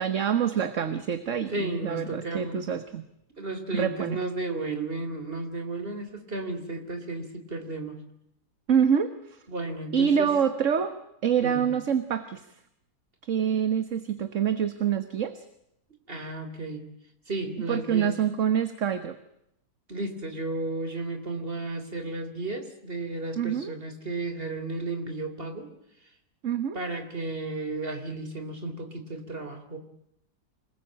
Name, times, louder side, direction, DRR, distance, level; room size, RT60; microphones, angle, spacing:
voice 1, 0.0-3.0 3.7-4.2 8.7-9.4 9.9-11.0 11.2-12.4 13.3-15.4 17.7-19.2 23.4-23.7 26.4-26.8, right 8 dB, 50° right, 10 dB, 1.6 m, -26 dB
voice 2, 1.5-2.6 3.4-8.0 9.5-10.3 11.4-11.8 16.1-16.9 17.3-18.1 19.9-25.7 26.7-29.8, right 2 dB, 35° right, 7 dB, 3.7 m, -33 dB
27.0 x 20.5 x 8.9 m, 0.78 s
omnidirectional pair, 1.8 m